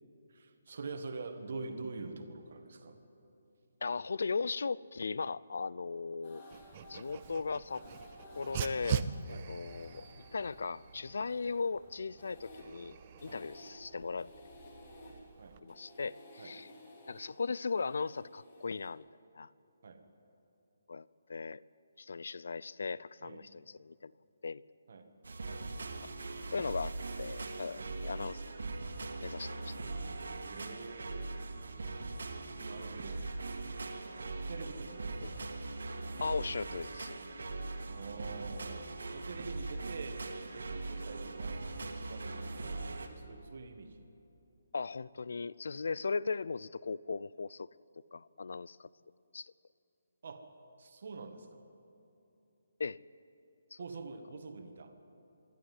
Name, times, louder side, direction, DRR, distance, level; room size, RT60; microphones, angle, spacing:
voice 1, 0.3-3.0 9.3-9.5 13.2-13.4 15.4-15.6 16.4-16.5 19.8-20.0 23.2-23.4 24.9-25.1 25.5-25.6 27.8-27.9 30.4-31.3 32.5-33.2 34.5-35.4 37.8-38.9 39.1-40.2 40.5-44.0 50.2-50.4 50.8-51.6 53.8-54.9, right 3 dB, 40° right, 7 dB, 1.6 m, -45 dB
voice 2, 3.8-6.4 6.9-7.8 8.4-10.1 10.3-14.3 15.0-15.1 15.6-16.7 17.1-19.0 19.3-19.5 20.9-21.6 22.0-24.1 24.4-24.6 26.0-26.1 26.5-28.4 29.2-29.8 35.2-35.3 36.2-37.2 44.7-47.7 48.1-48.9 49.3-49.5 52.8-53.0 53.7-53.8, left 4 dB, 60° left, 21 dB, 0.4 m, -38 dB
sound 1, 6.2-18.9, left 1 dB, 25° left, 3.2 m, -55 dB
Dog, 6.5-15.6, right 8 dB, 20° right, 0.5 m, -43 dB
sound 2, 25.2-43.1, right 3 dB, 80° right, 2.3 m, -41 dB
26.0 x 11.5 x 9.4 m, 2.9 s
hypercardioid pair, 180°, 0 cm